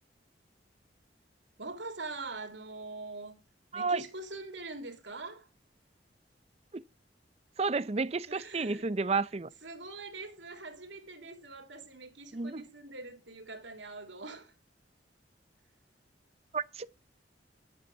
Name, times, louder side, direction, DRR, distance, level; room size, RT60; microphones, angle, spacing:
voice 1, 1.6-3.4 3.7-5.5 8.3-8.9 9.6-14.5, right 3 dB, 90° right, 3.0 m, -43 dB
voice 2, 3.7-4.0 6.7-6.8 7.6-9.5 12.3-12.6 16.5-16.9, right 4 dB, 35° right, 0.6 m, -31 dB
11.0 x 7.9 x 5.7 m
head